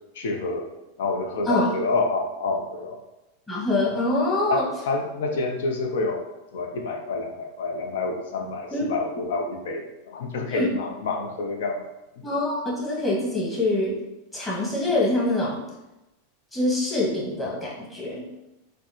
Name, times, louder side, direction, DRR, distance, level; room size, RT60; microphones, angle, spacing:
voice 1, 0.1-0.7 1.0-3.0 4.5-6.2 6.5-11.8, left 3 dB, 70° left, 3 dB, 0.6 m, -28 dB
voice 2, 3.5-4.6 8.7-8.9 10.5-10.7 12.2-14.0 14.3-15.6 16.5-18.2, left 2 dB, 15° left, -6 dB, 1.4 m, -25 dB
4.1 x 2.1 x 2.9 m, 0.97 s
hypercardioid pair, 95°, 0 cm